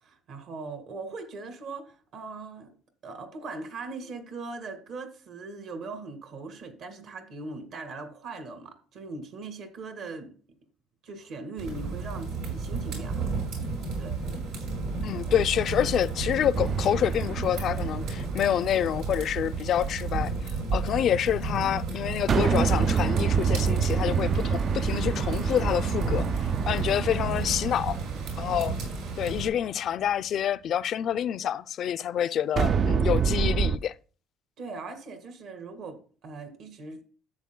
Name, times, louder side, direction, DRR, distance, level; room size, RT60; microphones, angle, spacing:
voice 1, 0.0-2.7 3.0-10.3 11.0-13.2 13.5-13.6 14.0-14.2 34.6-37.0, right 3 dB, 65° right, 2.1 m, -40 dB
sound 1, 11.6-29.5, right 3 dB, 80° right, 5.0 m, -33 dB
voice 2, 15.0-28.0 28.4-28.8 29.2-33.9, left 10 dB, 55° left, 0.4 m, -27 dB
sound 2, 16.5-19.1 22.3-29.5 32.6-33.8, right 6 dB, 40° right, 0.3 m, -27 dB
13.0 x 8.0 x 2.2 m
cardioid pair, 120°, 0 cm